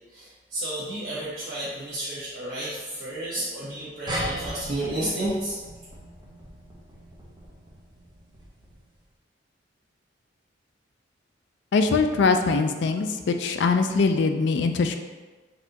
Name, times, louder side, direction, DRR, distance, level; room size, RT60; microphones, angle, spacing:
voice 1, 0.1-5.6, right 1 dB, 55° right, -11 dB, 1.1 m, -31 dB
sound 1, 4.1-8.9, equal, 25° right, 0.8 m, -37 dB
voice 2, 11.7-14.9, left 4 dB, 65° left, 6 dB, 0.4 m, -22 dB
4.1 x 2.7 x 4.0 m, 1.3 s
head